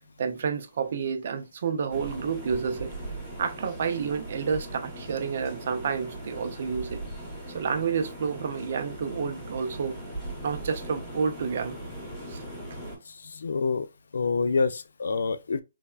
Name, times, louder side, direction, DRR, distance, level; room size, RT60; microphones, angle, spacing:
voice 1, 0.2-2.9 3.4-7.0 7.5-10.0 10.4-11.8 12.3-12.4, right 6 dB, 45° right, 0.4 m, -30 dB
sound 1, 1.9-13.0, right 1 dB, 5° left, 1.0 m, -39 dB
voice 2, 13.1-13.9 14.1-15.6, left 4 dB, 75° left, 0.3 m, -27 dB
3.3 x 2.1 x 2.3 m
hypercardioid pair, 170°, 0 cm